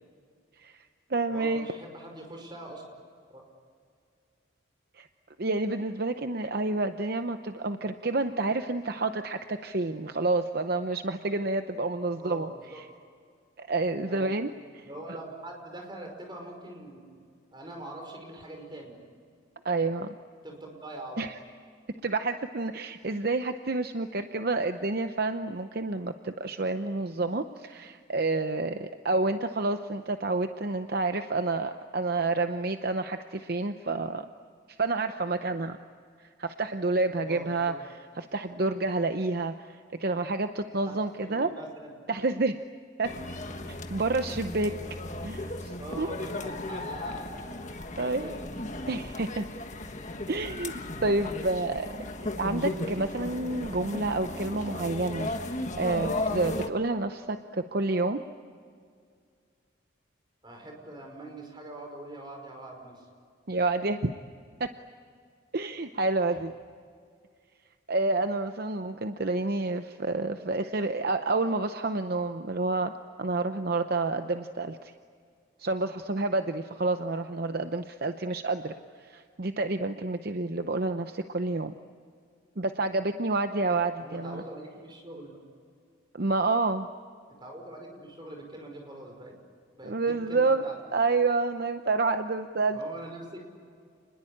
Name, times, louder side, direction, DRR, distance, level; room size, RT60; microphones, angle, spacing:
voice 1, 0.6-1.7 4.9-5.1 5.4-12.9 13.6-14.9 19.6-20.2 21.2-21.4 22.0-34.3 34.7-35.8 36.2-37.7 38.2-41.5 42.1-42.6 43.0-43.1 43.9-44.7 45.2-46.1 48.0-48.3 48.9-49.5 50.3-51.9 52.2-58.2 63.5-64.2 64.6-64.7 65.5-66.5 67.9-72.9 73.2-74.9 75.6-78.7 79.0-81.7 82.6-84.4 86.1-86.9 89.8-90.6 90.9-92.8, right 3 dB, 50° right, 8 dB, 0.8 m, -29 dB
voice 2, 1.3-2.8 3.3-3.5 12.2-12.8 14.1-14.3 14.8-17.1 17.5-19.0 20.4-21.3 37.2-37.8 40.9-42.1 43.6-43.7 45.8-47.7 48.0-48.5 60.4-63.1 84.0-85.4 87.4-89.3 89.7-90.8 92.7-93.5, right 1 dB, 25° right, 2 dB, 5.4 m, -43 dB
sound 1, 43.0-56.7, left 2 dB, 35° left, 1.5 m, -36 dB
29.0 x 21.0 x 8.7 m, 2.1 s
head